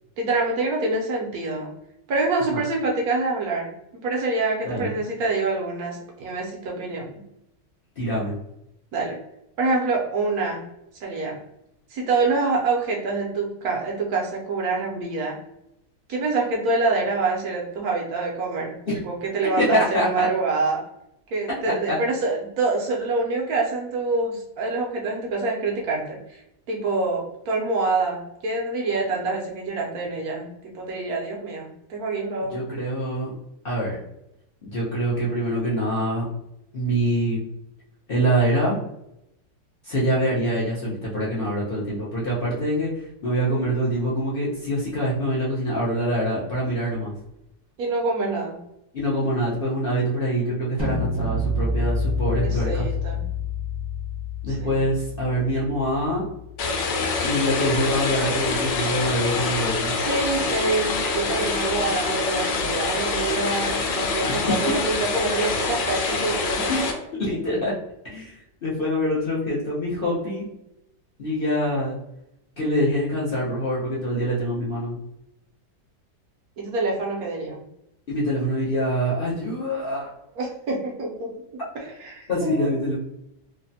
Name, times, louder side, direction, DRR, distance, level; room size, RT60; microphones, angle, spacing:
voice 1, 0.2-1.7 2.1-3.7 4.0-7.1 8.9-9.2 9.6-10.7 11.0-11.4 11.9-15.4 16.1-18.7 19.0-20.8 21.3-26.4 26.7-30.5 30.7-32.6 47.8-48.6 52.2-53.2 54.5-54.9 60.0-66.7 76.6-77.6 80.4-81.4 81.7-82.7, right 3 dB, 65° right, -1 dB, 1.0 m, -26 dB
voice 2, 8.0-8.3 18.9-19.0 19.6-20.3 21.7-22.0 32.5-33.3 33.6-34.0 34.6-36.2 36.7-37.4 38.1-38.8 39.8-47.1 48.9-52.9 54.4-56.2 57.2-59.9 64.3-64.4 66.7-66.8 67.2-67.7 68.0-70.4 71.2-72.0 72.6-75.0 78.1-80.1 82.3-83.0, equal, 55° left, -6 dB, 0.6 m, -25 dB
sound 1, 50.8-56.8, left 2 dB, 30° right, 0.7 m, -28 dB
sound 2, 56.6-66.9, left 3 dB, 80° left, 1.3 m, -25 dB
3.2 x 2.0 x 2.6 m, 0.83 s
omnidirectional pair, 1.9 m